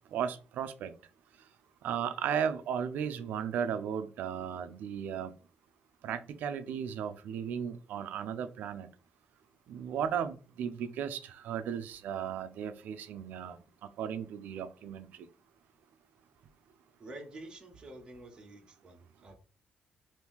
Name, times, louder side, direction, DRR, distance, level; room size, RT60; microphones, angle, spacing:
voice 1, 0.1-0.9 1.8-5.3 6.0-8.9 9.7-13.6 14.0-15.1, right 8 dB, 80° right, 11 dB, 0.4 m, -35 dB
voice 2, 17.0-19.4, right 1 dB, 30° right, 3 dB, 0.8 m, -48 dB
2.9 x 2.7 x 3.5 m, 0.36 s
cardioid pair, 150°, 3 cm